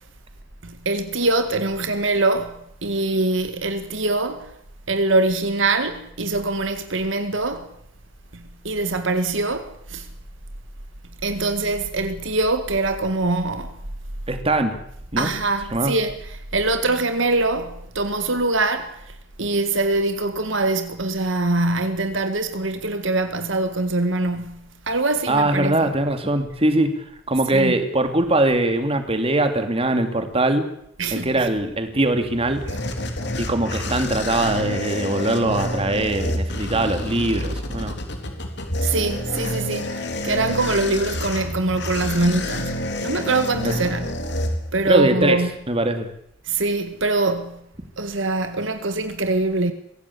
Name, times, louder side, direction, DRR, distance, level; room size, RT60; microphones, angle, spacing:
voice 1, 0.6-4.5 4.9-7.7 8.6-10.1 11.2-13.7 15.2-16.2 16.5-19.0 19.4-24.6 24.9-25.8 27.5-27.8 31.0-31.5 38.8-44.1 44.7-45.5 46.5-47.6 48.0-49.7, right 2 dB, 70° right, 2.0 m, -23 dB
voice 2, 14.3-14.8 15.1-15.3 15.7-15.9 25.3-26.9 27.3-30.6 31.1-32.6 33.4-37.9 43.6-43.8 44.8-45.4 45.7-46.1, right 2 dB, 30° right, 2.7 m, -21 dB
sound 1, 32.2-45.1, left 1 dB, 60° left, 3.8 m, -28 dB
24.0 x 16.5 x 8.6 m
head